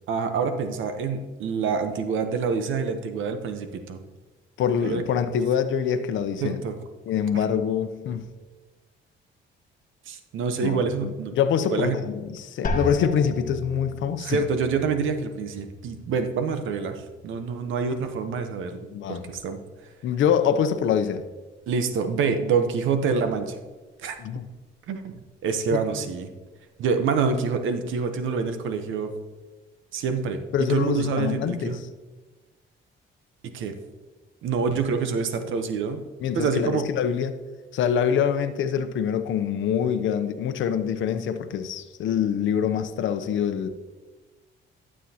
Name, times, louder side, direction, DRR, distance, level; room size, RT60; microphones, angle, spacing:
voice 1, 0.1-4.0 4.8-5.0 6.4-6.8 10.1-11.3 11.7-12.0 14.2-19.6 21.7-23.6 24.0-24.2 24.9-26.3 26.8-29.1 29.9-30.4 30.7-31.8 33.5-33.8 34.4-36.0 36.3-36.9, right 5 dB, 80° right, 8 dB, 0.9 m, -26 dB
voice 2, 4.6-6.6 7.1-8.3 10.6-14.4 18.9-19.3 20.0-21.2 24.2-24.4 25.7-26.1 30.5-31.8 36.2-37.3 37.7-43.7, left 8 dB, 75° left, 9 dB, 0.7 m, -25 dB
sound 1, 12.6-18.3 18.6-19.3 19.8-20.3, left 2 dB, 45° left, 1.2 m, -37 dB
12.0 x 7.4 x 2.8 m, 1.3 s
cardioid pair, 90°, 20 cm